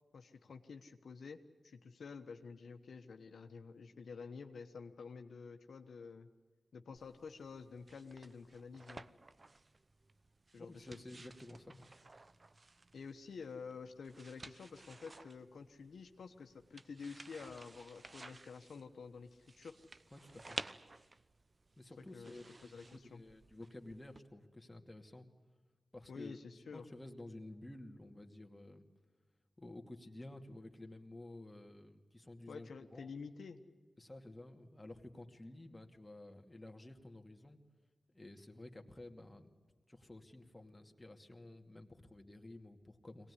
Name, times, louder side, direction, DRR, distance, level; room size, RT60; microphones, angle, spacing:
voice 1, 0.1-6.3 6.7-9.0 10.5-11.1 12.9-19.8 22.1-23.2 26.1-26.8 32.5-33.6, left 5 dB, 85° left, 5 dB, 1.2 m, -50 dB
sound 1, 7.0-24.2, right 2 dB, 40° right, 0.9 m, -54 dB
voice 2, 10.6-11.8 20.1-20.6 21.8-25.3 25.9-26.4 26.7-28.8 29.6-33.1 34.0-37.6 38.1-39.5 39.9-43.3, left 1 dB, 20° left, 3 dB, 2.5 m, -52 dB
23.0 x 18.5 x 9.9 m, 1.3 s
cardioid pair, 55°, 0 cm